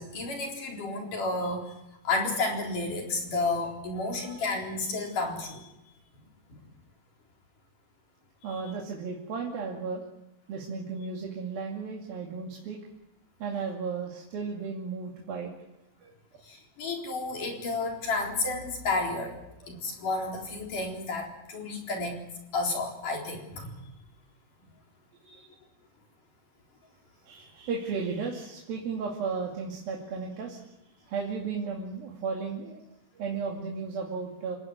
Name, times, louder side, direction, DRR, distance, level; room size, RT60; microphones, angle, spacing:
voice 1, 0.0-1.7 2.0-5.6 6.5-6.6 16.4-19.4 19.7-22.2 22.5-23.9, left 3 dB, 45° left, 1 dB, 5.2 m, -31 dB
voice 2, 4.0-4.5 8.4-10.0 10.5-12.8 13.4-15.5 16.0-16.1 19.8-19.9 25.2-25.5 27.2-30.7 30.9-32.8 33.1-34.6, right 5 dB, 55° right, -1 dB, 4.0 m, -35 dB
28.0 x 16.0 x 9.6 m, 0.91 s
omnidirectional pair, 5.2 m